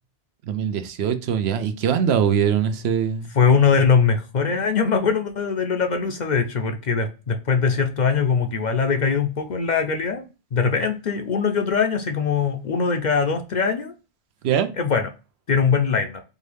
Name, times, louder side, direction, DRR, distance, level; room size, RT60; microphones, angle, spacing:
voice 1, 0.4-3.3 14.4-14.7, right 8 dB, 80° right, 0.9 m, -22 dB
voice 2, 3.4-10.2 10.5-13.9 14.8-15.1 15.5-16.2, left 5 dB, 55° left, 0.6 m, -21 dB
4.5 x 2.7 x 3.3 m
omnidirectional pair, 1.1 m